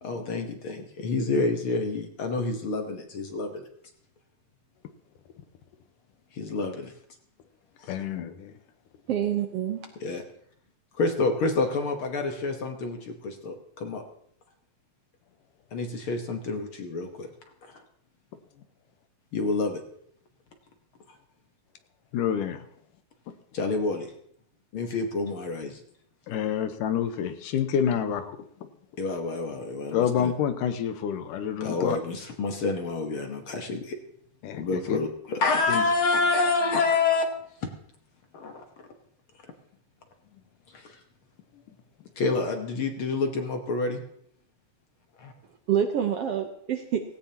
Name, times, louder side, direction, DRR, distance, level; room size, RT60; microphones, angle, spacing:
voice 1, 0.0-3.7 6.3-6.9 7.8-8.0 10.0-10.2 11.0-14.0 15.7-17.3 17.6-17.8 19.3-19.8 23.5-24.1 24.7-25.8 29.0-30.3 31.6-34.0 34.6-37.3 37.6-37.7 38.3-38.9 40.7-41.0 42.2-44.0 45.2-45.3, left 3 dB, 55° left, 5 dB, 1.6 m, -28 dB
voice 2, 7.9-8.5 22.1-22.6 26.3-28.3 29.9-32.0 34.4-34.6 34.9-35.0 35.7-35.9, left 8 dB, 85° left, 8 dB, 2.6 m, -27 dB
voice 3, 9.1-9.8 45.7-47.0, right 9 dB, 65° right, 5 dB, 1.6 m, -27 dB
17.5 x 17.0 x 2.9 m, 0.67 s
omnidirectional pair, 3.7 m